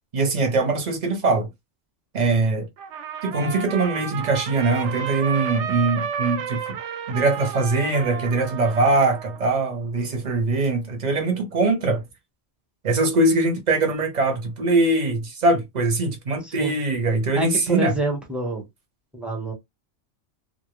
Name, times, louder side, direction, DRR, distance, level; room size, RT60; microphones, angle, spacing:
voice 1, 0.1-1.5 2.1-2.7 3.2-6.8 7.1-12.0 12.8-17.9, right 3 dB, 45° right, 0.7 m, -22 dB
Trumpet, 2.8-9.5, right 7 dB, 90° right, 0.9 m, -32 dB
voice 2, 16.4-16.7 17.3-18.7 19.1-19.5, right 2 dB, ahead, 0.6 m, -27 dB
2.1 x 2.0 x 3.0 m
omnidirectional pair, 1.2 m